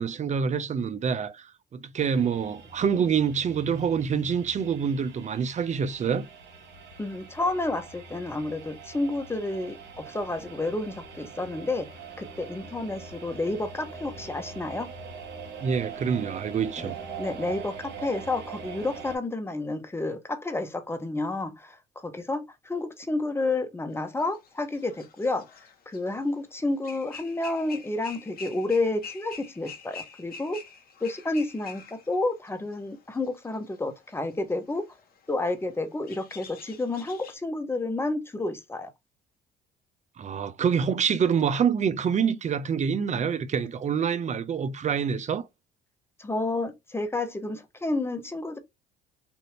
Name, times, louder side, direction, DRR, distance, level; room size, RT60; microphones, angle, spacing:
voice 1, 0.0-6.3 15.6-17.0 40.2-45.5, right 7 dB, 40° right, 0.5 m, -26 dB
sound 1, 2.0-19.2, right 5 dB, 60° right, 1.2 m, -43 dB
voice 2, 7.0-14.9 16.8-16.9 17.2-25.5 25.9-30.6 31.0-34.9 35.3-38.9 46.2-48.6, left 2 dB, 10° left, 0.8 m, -30 dB
sound 2, 24.2-26.5 26.8-37.4, left 5 dB, 50° left, 1.0 m, -46 dB
2.7 x 2.6 x 3.2 m
supercardioid pair, 70°, 19 cm